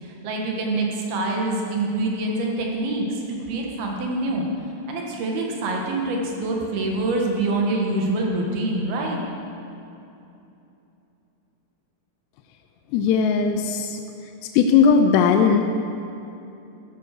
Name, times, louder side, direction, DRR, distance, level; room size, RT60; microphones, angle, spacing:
voice 1, 0.0-4.5 4.9-9.2, right 2 dB, 65° right, 0 dB, 3.1 m, -25 dB
voice 2, 12.9-14.0 14.6-15.6, left 6 dB, 80° left, 5 dB, 2.6 m, -18 dB
14.0 x 10.5 x 6.6 m, 2.8 s
omnidirectional pair, 5.3 m